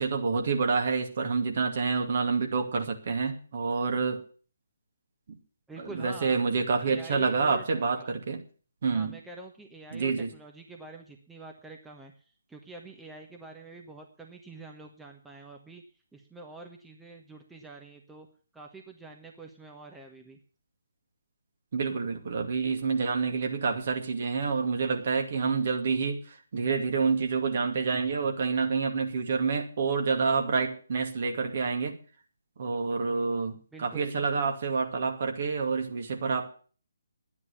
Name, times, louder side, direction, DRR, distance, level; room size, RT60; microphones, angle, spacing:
voice 1, 0.0-4.2 5.3-5.4 5.8-8.4 8.8-9.2 9.9-10.3 21.7-31.9 32.6-36.5, right 4 dB, 45° right, 4 dB, 2.4 m, -28 dB
voice 2, 5.7-6.4 6.8-8.1 8.8-18.3 18.5-20.4 33.7-34.2, right 2 dB, 5° right, 2 dB, 1.3 m, -46 dB
11.5 x 9.8 x 7.1 m, 0.41 s
figure-of-eight pair, 140°, 0 cm